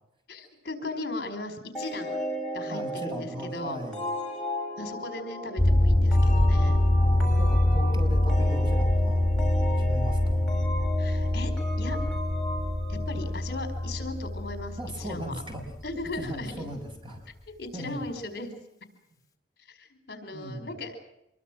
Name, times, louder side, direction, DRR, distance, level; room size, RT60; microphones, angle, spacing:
voice 1, 0.3-2.1 2.5-3.8 4.8-6.8 7.7-7.8 11.0-11.5 11.8-12.0 12.9-15.4 15.8-16.7 17.6-18.5 19.7-21.0, left 2 dB, 60° left, 8 dB, 4.7 m, -37 dB
sound 1, 1.7-14.2, equal, 5° left, 6.5 m, -36 dB
voice 2, 2.7-4.0 4.3-4.4 7.0-9.3 9.8-10.4 14.8-15.6 16.2-17.3 17.7-18.1 20.3-20.7, right 1 dB, 30° right, 3 dB, 6.2 m, -38 dB
sound 2, 5.6-16.4, left 1 dB, 20° left, 2.9 m, -24 dB
26.0 x 23.0 x 6.3 m, 0.85 s
head